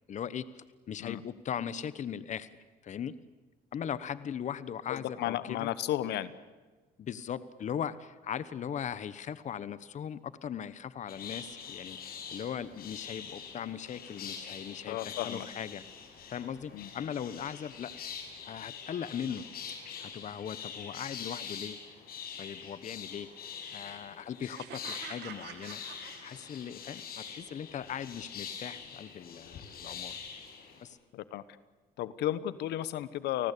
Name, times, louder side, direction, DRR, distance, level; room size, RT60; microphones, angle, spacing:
voice 1, 0.1-2.5 2.8-3.1 3.7-5.7 7.0-15.8 16.3-17.9 18.4-19.5 20.0-21.8 22.4-23.3 23.7-25.8 26.2-30.2 30.8-31.0, left 8 dB, 45° left, 16 dB, 1.1 m, -39 dB
voice 2, 4.9-6.3 14.9-15.5 16.7-16.9 31.1-31.4 32.0-33.5, left 13 dB, 80° left, 16 dB, 1.2 m, -33 dB
sound 1, 11.1-30.8, left 7 dB, 65° left, 6.3 m, -44 dB
sound 2, 24.6-26.9, right 12 dB, 80° right, 2.1 m, -47 dB
29.5 x 19.0 x 8.5 m, 1.3 s
cardioid pair, 110°, 17 cm